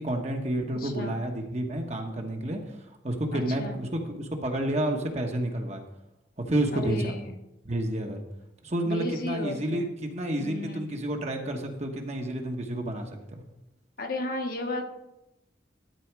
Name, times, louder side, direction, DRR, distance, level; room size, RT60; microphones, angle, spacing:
voice 1, 0.0-2.6 3.0-5.8 6.4-7.2 7.6-8.2 8.6-13.4, right 1 dB, 35° right, 3 dB, 1.1 m, -30 dB
voice 2, 0.7-1.2 3.3-3.8 6.7-7.4 8.9-9.9 10.4-10.9 14.0-14.9, left 1 dB, 50° left, 4 dB, 1.1 m, -34 dB
12.5 x 4.2 x 6.0 m, 0.89 s
head